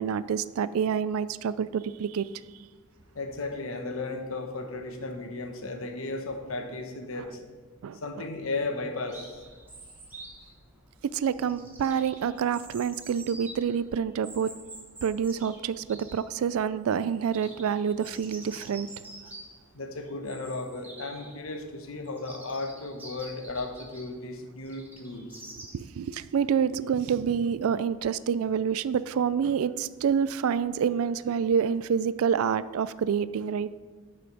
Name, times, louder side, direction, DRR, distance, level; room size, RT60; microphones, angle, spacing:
voice 1, 0.0-2.3 7.8-8.0 11.0-14.5 15.0-18.9 25.7-33.7, right 7 dB, 85° right, 16 dB, 0.3 m, -27 dB
voice 2, 3.1-7.4 8.0-9.4 19.7-25.4, left 3 dB, 75° left, 5 dB, 1.0 m, -35 dB
Chirp tweet, 9.1-25.7, right 2 dB, 10° right, 1.0 m, -48 dB
7.8 x 5.8 x 5.3 m, 1.5 s
head